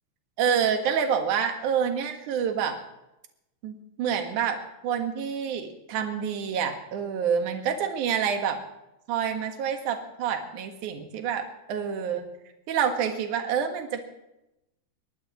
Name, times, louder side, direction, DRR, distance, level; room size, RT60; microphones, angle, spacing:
voice 1, 0.4-2.8 3.6-8.6 9.1-12.3 12.7-14.1, right 7 dB, 65° right, 5 dB, 2.1 m, -27 dB
22.5 x 18.0 x 3.1 m, 0.91 s
omnidirectional pair, 5.5 m